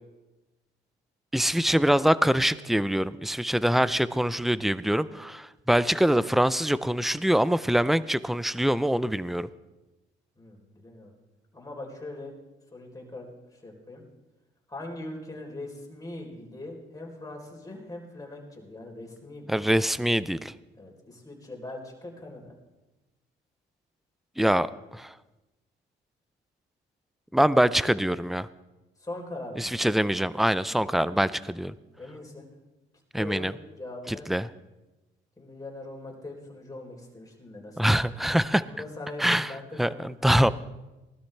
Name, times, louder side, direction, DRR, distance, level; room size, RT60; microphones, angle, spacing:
voice 1, 1.3-9.5 19.5-20.5 24.4-25.1 27.3-28.5 29.6-31.7 33.1-33.5 34.1-34.5 37.8-38.6 39.2-39.5 39.8-40.5, equal, ahead, 17 dB, 0.4 m, -24 dB
voice 2, 10.4-11.1 11.5-12.3 12.7-13.3 13.5-14.0 14.7-19.6 20.7-22.5 29.0-29.9 32.0-32.5 33.1-33.5 33.7-34.3 35.4-40.1, left 2 dB, 20° left, 0 dB, 3.8 m, -41 dB
19.0 x 12.5 x 3.4 m, 1.1 s
cardioid pair, 90°, 20 cm